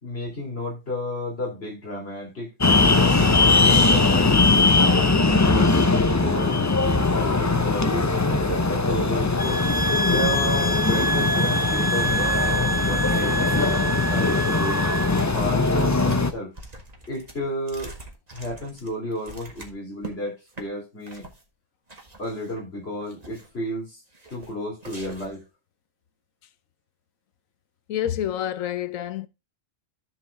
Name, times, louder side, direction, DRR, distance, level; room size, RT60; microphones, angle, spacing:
voice 1, 0.0-2.5 2.9-3.3 3.7-5.7 6.2-9.6 10.1-14.8 15.3-16.5 17.1-17.9 18.3-21.3 22.2-24.0 24.3-25.4, equal, 50° left, 3.7 m, -32 dB
sound 1, 2.6-16.3, left 3 dB, 25° left, 0.4 m, -20 dB
sound 2, 9.4-15.2, right 1 dB, 5° right, 1.2 m, -27 dB
sound 3, 14.9-15.4 15.6-20.1 20.5-20.7 21.0-21.4 21.9-22.6 23.0-23.6 24.1-24.5 24.8-25.4, right 2 dB, 30° right, 1.8 m, -43 dB
voice 2, 27.9-29.3, left 11 dB, 85° left, 1.1 m, -28 dB
13.5 x 4.9 x 3.4 m
omnidirectional pair, 1.3 m